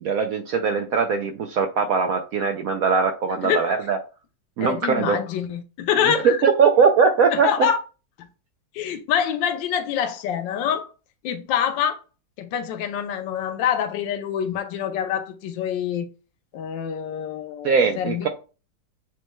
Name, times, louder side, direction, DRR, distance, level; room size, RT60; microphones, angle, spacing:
voice 1, 0.0-4.0 4.6-5.2 6.2-7.7 17.6-18.3, right 5 dB, 75° right, 0.8 m, -20 dB
voice 2, 4.6-6.4 7.3-7.8 8.7-10.9 11.2-12.0 12.4-16.1 16.5-18.3, left 9 dB, 85° left, 1.3 m, -26 dB
7.4 x 3.0 x 2.2 m
omnidirectional pair, 2.0 m